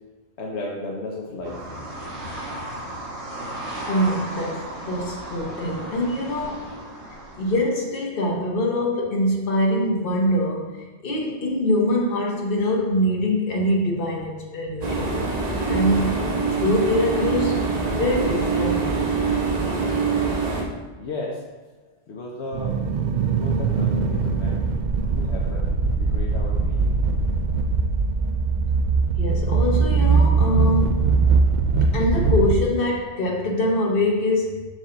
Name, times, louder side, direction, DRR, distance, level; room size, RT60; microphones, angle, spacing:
voice 1, 0.4-3.1 21.0-21.4 22.1-22.8 23.2-24.6 25.1-25.7 25.9-27.0, left 2 dB, 75° left, -2 dB, 1.0 m, -35 dB
sound 1, 1.4-7.6, right 1 dB, 75° right, 1.5 m, -35 dB
voice 2, 3.9-6.6 7.4-15.2 15.7-18.9 29.2-31.0 31.9-34.7, left 1 dB, 55° left, -2 dB, 1.2 m, -24 dB
sound 2, 14.8-20.6, right 4 dB, 40° right, 0.9 m, -24 dB
sound 3, 22.5-32.5, right 4 dB, 60° right, 0.5 m, -21 dB
5.5 x 4.9 x 3.8 m, 1.2 s
omnidirectional pair, 1.2 m